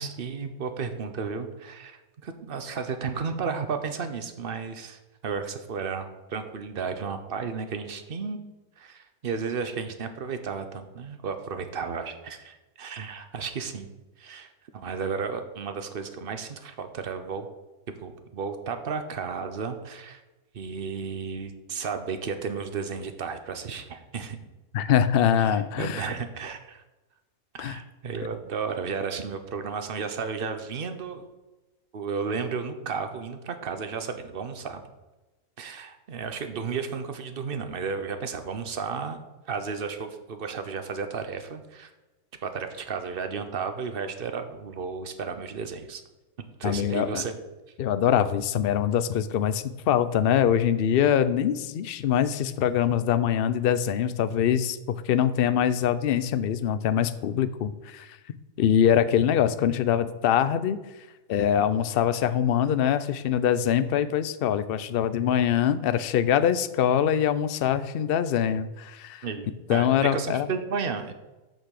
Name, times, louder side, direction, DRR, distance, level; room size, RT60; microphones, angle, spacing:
voice 1, 0.0-8.4 8.8-13.9 14.2-17.5 18.0-20.2 20.5-24.4 25.4-26.8 27.5-31.2 31.9-34.8 35.6-39.2 39.5-41.9 42.4-46.0 46.6-47.4 69.2-71.1, right 5 dB, 45° right, 8 dB, 1.0 m, -33 dB
voice 2, 24.7-26.1 27.6-27.8 46.6-47.2 47.8-58.2 58.6-60.8 61.3-69.3 69.7-70.5, left 9 dB, 65° left, 12 dB, 0.6 m, -24 dB
9.1 x 5.9 x 6.6 m, 1.1 s
omnidirectional pair, 1.6 m